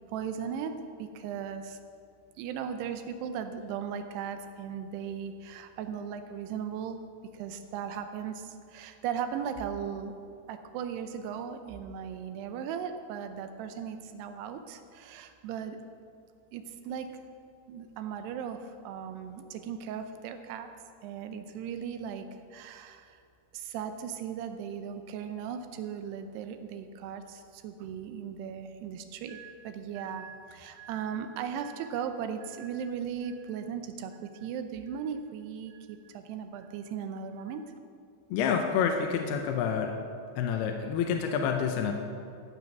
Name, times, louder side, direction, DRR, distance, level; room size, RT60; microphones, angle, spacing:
voice 1, 0.1-0.7 1.0-1.8 2.4-7.0 7.3-10.1 10.5-15.8 16.5-17.2 17.7-20.7 21.0-22.3 22.5-23.2 23.5-37.6, right 7 dB, 85° right, 8 dB, 2.8 m, -37 dB
voice 2, 38.3-39.9 40.4-41.9, left 7 dB, 80° left, 4 dB, 2.7 m, -28 dB
14.5 x 6.9 x 6.0 m, 2.4 s
omnidirectional pair, 4.7 m